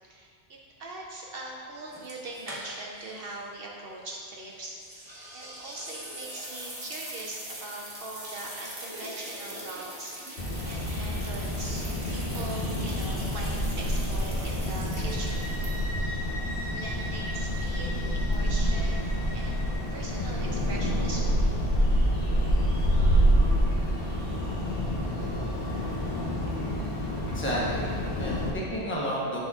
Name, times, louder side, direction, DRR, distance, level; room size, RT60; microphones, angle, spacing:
voice 1, 0.0-5.0 5.3-10.3 10.6-15.5 16.7-21.6, right 2 dB, 65° right, -2 dB, 0.8 m, -41 dB
sound 1, 1.9-3.0 3.3-3.4 4.8-16.1, right 1 dB, 20° right, 1.1 m, -42 dB
sound 2, 10.4-28.5, equal, 65° left, 1.3 m, -27 dB
sound 3, 14.9-19.8, left 1 dB, 45° left, 1.8 m, -41 dB
voice 2, 27.3-29.4, equal, 10° left, -5 dB, 0.9 m, -31 dB
11.5 x 4.0 x 2.4 m, 2.4 s
omnidirectional pair, 1.1 m